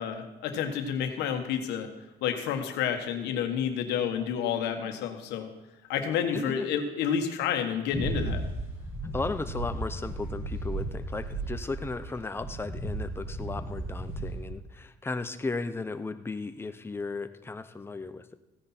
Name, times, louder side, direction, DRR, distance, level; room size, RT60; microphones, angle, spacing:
voice 1, 0.0-1.9 2.2-5.5 5.9-8.4, left 8 dB, 90° left, 6 dB, 1.5 m, -30 dB
voice 2, 6.3-6.6 9.1-18.4, left 3 dB, 15° left, 10 dB, 0.7 m, -35 dB
sound 1, 7.9-12.1 12.4-14.5, right 2 dB, 15° right, 5.0 m, -35 dB
15.5 x 9.6 x 4.4 m, 1.0 s
cardioid pair, 110°, 17 cm